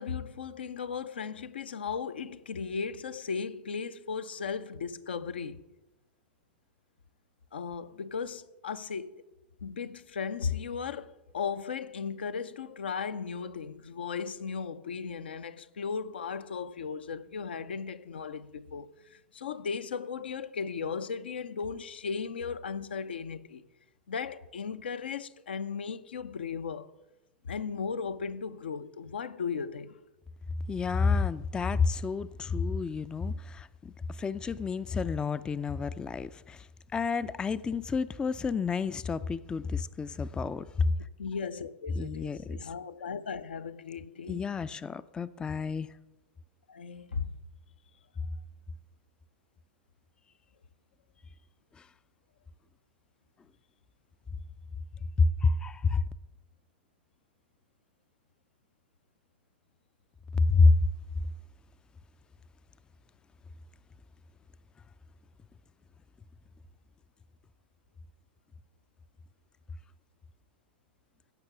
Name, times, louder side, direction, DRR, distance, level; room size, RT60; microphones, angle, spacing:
voice 1, 0.0-5.6 7.5-9.2 9.6-23.6 24.1-26.9 27.4-29.9 41.2-44.5 46.7-47.3, left 6 dB, 75° left, 0.6 m, -36 dB
voice 2, 30.7-36.7 36.9-40.9 42.0-42.7 44.3-45.9 51.8-51.9 55.2-56.1 60.3-60.8, left 4 dB, 15° left, 0.4 m, -29 dB
16.5 x 6.0 x 5.9 m
figure-of-eight pair, 95°, 6 cm